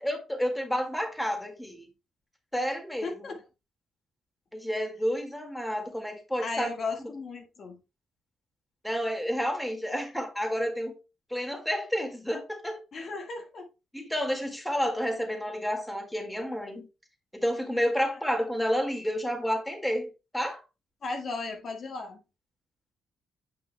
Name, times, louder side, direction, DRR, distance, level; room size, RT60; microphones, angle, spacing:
voice 1, 0.0-1.9 2.5-3.2 4.5-6.7 8.8-10.9 11.3-12.8 13.9-16.9 17.3-20.6, equal, 5° left, 1.9 m, -30 dB
voice 2, 3.0-3.4 6.4-7.8 12.9-13.7 21.0-22.2, left 3 dB, 50° left, 1.6 m, -35 dB
9.5 x 5.6 x 2.2 m
cardioid pair, 90°, 0 cm